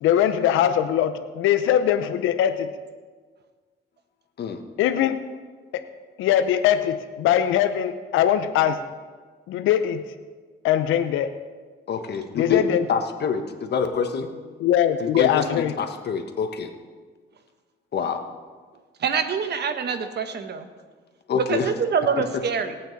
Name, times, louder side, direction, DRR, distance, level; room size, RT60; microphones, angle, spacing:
voice 1, 0.0-2.7 4.8-5.2 5.7-5.8 6.2-8.8 9.5-10.0 10.6-11.3 12.3-12.8 14.6-15.7, left 10 dB, 90° left, 10 dB, 0.6 m, -21 dB
voice 2, 11.9-14.3 15.0-15.4 15.8-16.7 17.9-18.2 21.3-21.7, left 6 dB, 55° left, 6 dB, 1.3 m, -26 dB
voice 3, 19.0-20.7 21.3-22.8, right 6 dB, 55° right, 8 dB, 1.2 m, -25 dB
17.5 x 8.7 x 4.1 m, 1.5 s
cardioid pair, 90°, 20 cm